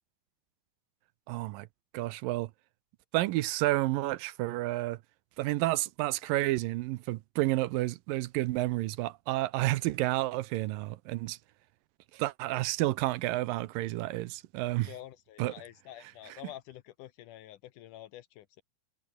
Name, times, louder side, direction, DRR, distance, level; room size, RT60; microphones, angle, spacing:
voice 1, 1.3-1.7 1.9-2.5 3.1-5.0 5.4-11.4 12.1-14.9 15.4-15.5, right 17 dB, 80° right, 2.3 m, -30 dB
voice 2, 14.8-18.6, left 13 dB, 75° left, 2.1 m, -48 dB
omnidirectional pair, 4.2 m